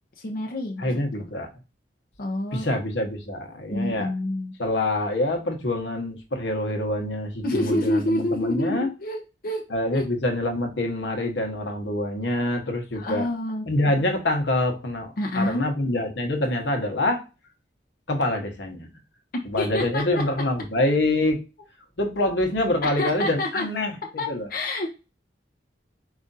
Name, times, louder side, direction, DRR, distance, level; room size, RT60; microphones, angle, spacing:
voice 1, 0.2-0.9 2.2-2.7 3.7-4.6 7.4-9.7 9.9-10.1 12.9-14.0 15.2-15.7 19.3-20.2 22.8-23.6 24.2-24.9, left 1 dB, 55° left, 1 dB, 0.7 m, -28 dB
voice 2, 0.8-1.5 2.5-4.1 4.6-8.9 9.7-13.3 13.7-17.2 18.1-18.9 19.4-21.4 22.0-24.0 24.3-24.5, left 1 dB, 80° left, 4 dB, 1.1 m, -25 dB
5.0 x 2.5 x 4.0 m, 0.29 s
head